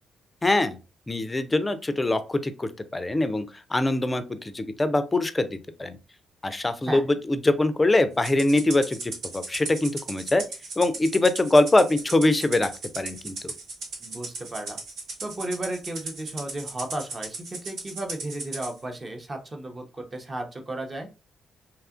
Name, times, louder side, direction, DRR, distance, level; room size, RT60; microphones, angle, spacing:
voice 1, 0.4-0.8 1.1-6.0 6.4-10.4 10.8-12.7 13.0-13.5, left 2 dB, 20° left, 11 dB, 0.4 m, -23 dB
Rattle (instrument), 8.2-18.7, right 3 dB, 75° right, 0.9 m, -37 dB
voice 2, 14.0-14.8 15.2-21.1, right 1 dB, 30° right, 4 dB, 0.7 m, -34 dB
2.8 x 2.4 x 2.4 m, 0.30 s
cardioid pair, 80°, 0 cm